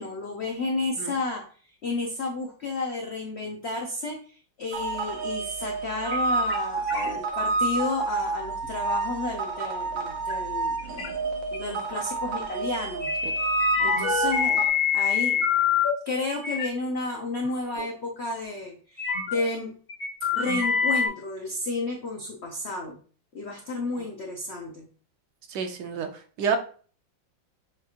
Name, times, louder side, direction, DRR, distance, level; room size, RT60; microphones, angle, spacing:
voice 1, 0.0-1.4 1.8-11.1 11.5-13.1 13.3-14.6 14.9-15.5 16.1-19.7 20.3-23.0 23.3-24.9, left 2 dB, 80° left, 1 dB, 0.6 m, -32 dB
sound 1, 4.7-14.7, right 3 dB, 85° right, 1.6 m, -29 dB
sound 2, 6.0-6.2 6.5-6.6 6.9-7.4 7.9-8.1 8.6-8.7 10.3-10.4 10.8-11.1 11.5-11.6 13.0-15.9 16.3-16.7 17.4-17.5 17.7-17.8 19.0-19.4 19.9-21.1, left 6 dB, 45° left, 0.7 m, -25 dB
voice 2, 25.5-26.1 26.4-26.6, right 6 dB, 70° right, 6 dB, 1.2 m, -28 dB
7.0 x 2.4 x 2.8 m, 0.41 s
omnidirectional pair, 2.1 m